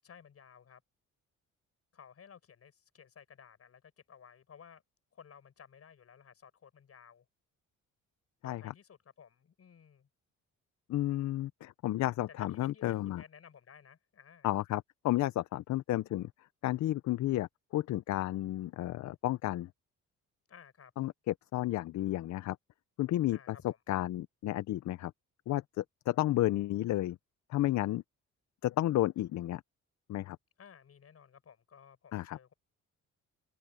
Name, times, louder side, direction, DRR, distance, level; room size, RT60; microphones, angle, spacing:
voice 1, 0.0-0.8 1.9-4.8 5.1-7.3 8.4-10.1 12.3-14.5 20.5-20.9 23.3-23.8 30.6-32.5, left 7 dB, 50° left, 7.1 m, -56 dB
voice 2, 10.9-13.2 14.4-16.3 16.6-19.7 21.0-22.6 23.0-23.6 23.9-25.1 25.5-27.2 27.5-28.0 28.6-29.6 30.1-30.4 32.1-32.4, left 14 dB, 70° left, 0.6 m, -32 dB
cardioid pair, 90°, 30 cm